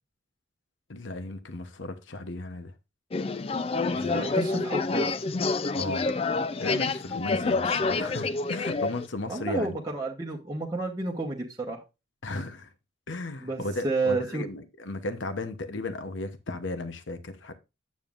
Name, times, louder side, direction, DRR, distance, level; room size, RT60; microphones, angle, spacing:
voice 1, 0.9-2.7 3.8-4.3 5.7-6.1 6.6-9.8 12.2-12.7 13.1-17.5, left 2 dB, 70° left, 1.0 m, -35 dB
sound 1, 3.1-9.1, left 3 dB, 30° left, 0.4 m, -28 dB
voice 2, 3.9-5.3 9.3-11.8 13.4-14.4, right 3 dB, 20° right, 1.0 m, -31 dB
9.0 x 7.2 x 2.5 m
head